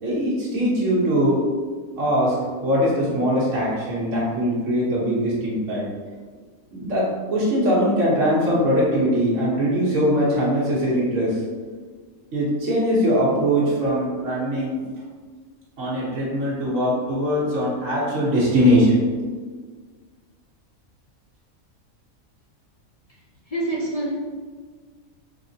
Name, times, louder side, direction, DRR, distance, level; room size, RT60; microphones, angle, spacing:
voice 1, 0.0-1.4 2.0-5.8 6.7-11.4 12.3-14.8 15.8-19.1, equal, 65° right, -7 dB, 1.5 m, -21 dB
voice 2, 23.5-24.1, right 1 dB, 55° left, -5 dB, 0.4 m, -26 dB
4.0 x 3.2 x 2.7 m, 1.5 s
omnidirectional pair, 1.4 m